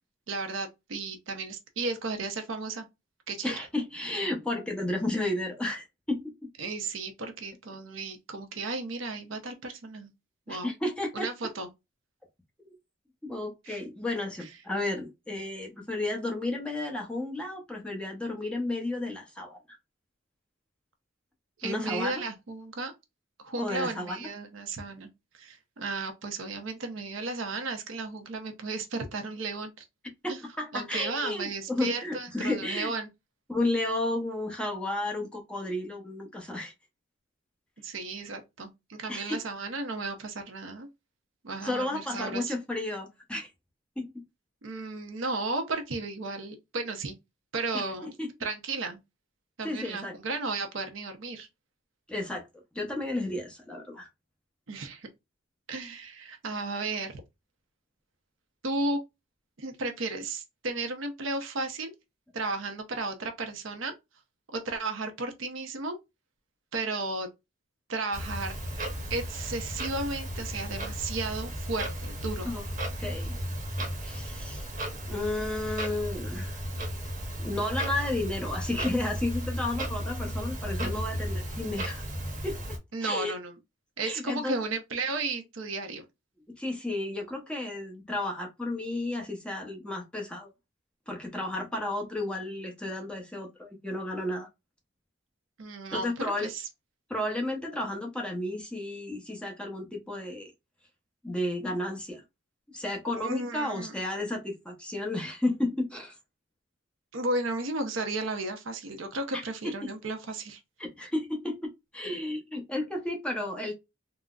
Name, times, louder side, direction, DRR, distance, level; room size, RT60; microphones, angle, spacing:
voice 1, 0.3-2.9 3.3-3.6 6.6-10.1 10.5-10.7 11.1-11.7 13.7-13.8 14.4-14.5 21.6-22.9 23.4-29.8 30.3-30.4 30.7-33.1 37.8-40.9 41.4-42.5 44.6-47.2 47.5-48.1 48.4-49.0 49.6-51.5 54.7-55.1 55.7-57.2 58.6-59.0 59.6-61.9 62.3-63.9 64.5-66.0 66.7-67.3 67.9-68.6 69.1-72.5 82.9-83.6 84.0-86.1 95.6-96.7 103.2-103.9 107.1-110.6, right 3 dB, 70° right, 0.7 m, -34 dB
voice 2, 3.4-6.3 10.5-11.3 13.2-19.6 21.6-22.2 23.6-24.2 30.2-32.9 33.5-36.7 39.1-39.4 41.6-43.5 44.0-44.1 47.7-47.8 48.2-48.3 49.6-50.1 52.1-52.5 52.7-54.1 72.5-72.6 73.0-73.4 74.0-74.7 75.1-76.6 77.4-82.0 82.4-83.3 84.0-84.6 86.6-90.5 91.1-94.5 96.0-96.5 97.1-100.5 101.2-102.2 102.7-106.1 109.3-109.7 110.8-113.7, left 1 dB, 5° left, 0.7 m, -32 dB
Clock, 68.1-82.8, equal, 45° right, 0.9 m, -34 dB
3.7 x 2.1 x 2.3 m
head